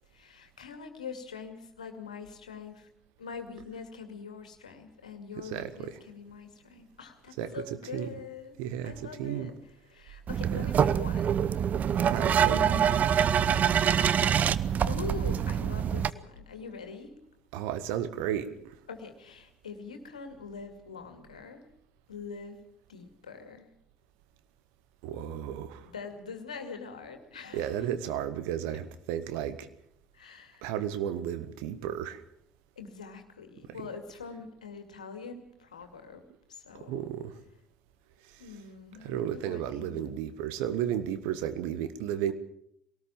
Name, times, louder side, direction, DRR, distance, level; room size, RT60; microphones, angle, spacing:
voice 1, 0.1-2.9 3.2-8.6 8.8-11.5 11.8-13.6 14.8-17.1 18.9-21.7 22.1-22.6 22.9-23.7 25.8-27.9 30.1-30.7 32.8-36.2 36.5-37.1 38.4-40.2, left 5 dB, 85° left, 6 dB, 2.3 m, -44 dB
voice 2, 5.5-5.9 7.4-7.5 7.9-8.1 8.6-9.5 10.5-10.7 12.1-12.7 17.5-18.7 25.0-25.9 27.5-29.7 30.6-32.2 36.9-37.3 38.9-42.3, right 10 dB, 65° right, 12 dB, 1.5 m, -33 dB
sound 1, 10.3-16.1, right 8 dB, 45° right, 0.8 m, -25 dB
20.5 x 18.5 x 7.3 m, 0.71 s
figure-of-eight pair, 55°, 4 cm